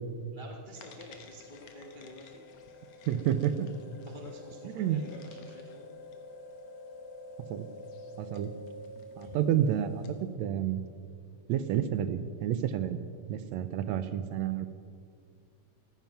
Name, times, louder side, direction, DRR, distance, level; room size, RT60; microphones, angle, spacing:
voice 1, 0.3-2.4 3.0-3.3 3.6-5.9 9.2-9.4, left 1 dB, 40° left, 0 dB, 0.6 m, -49 dB
sound 1, 0.7-10.3, left 2 dB, 65° left, 2.5 m, -48 dB
voice 2, 3.1-3.7 4.8-5.0 7.5-7.7 8.2-8.5 9.2-10.0 10.4-10.8 11.5-13.0 13.3-14.7, right 10 dB, 75° right, 11 dB, 1.8 m, -29 dB
15.0 x 14.5 x 5.8 m, 2.1 s
omnidirectional pair, 3.5 m